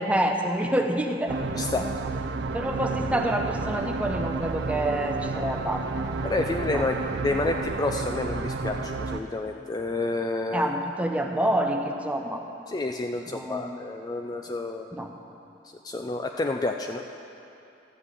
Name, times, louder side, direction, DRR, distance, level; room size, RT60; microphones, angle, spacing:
voice 1, 0.0-1.4 2.5-5.8 6.7-6.8 10.5-12.4 13.3-13.7 14.9-15.1, right 1 dB, 10° right, 3 dB, 0.7 m, -27 dB
sound 1, 1.3-9.2, right 3 dB, 70° right, 0.5 m, -31 dB
voice 2, 1.5-1.9 6.2-10.7 12.7-14.9 15.8-17.0, left 2 dB, 20° left, 4 dB, 0.3 m, -29 dB
13.0 x 5.4 x 8.2 m, 2.7 s
head